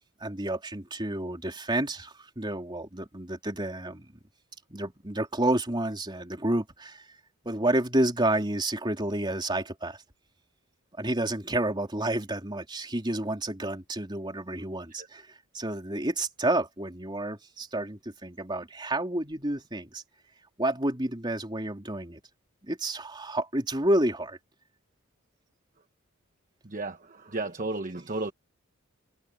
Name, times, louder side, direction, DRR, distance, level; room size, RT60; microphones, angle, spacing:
voice 1, 0.2-4.1 4.7-7.0 7.4-10.0 11.0-15.3 15.5-20.0 20.6-22.2 22.6-24.4, right 1 dB, 20° right, 3.7 m, -30 dB
voice 2, 26.6-28.3, right 2 dB, 40° right, 1.1 m, -33 dB
head